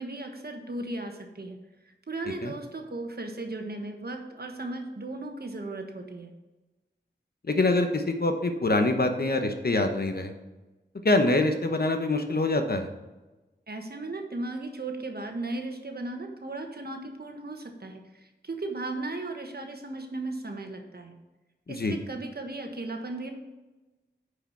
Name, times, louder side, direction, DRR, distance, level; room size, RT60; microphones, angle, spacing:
voice 1, 0.0-1.6 2.1-6.3 13.7-18.0 18.4-21.2 21.7-23.3, right 2 dB, 60° right, 4 dB, 1.4 m, -36 dB
voice 2, 7.5-10.3 11.0-12.9 21.7-22.0, left 2 dB, 60° left, 6 dB, 1.0 m, -25 dB
9.7 x 5.0 x 4.6 m, 1.1 s
wide cardioid pair, 50°, 18 cm